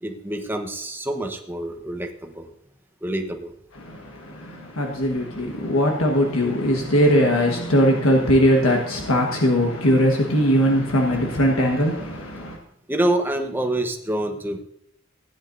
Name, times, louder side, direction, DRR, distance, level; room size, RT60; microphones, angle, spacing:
voice 1, 0.0-2.5 3.0-3.5 12.9-14.6, right 1 dB, 10° right, 1.1 m, -26 dB
voice 2, 3.7-12.6, equal, 80° left, 1.4 m, -20 dB
16.5 x 9.9 x 2.6 m
head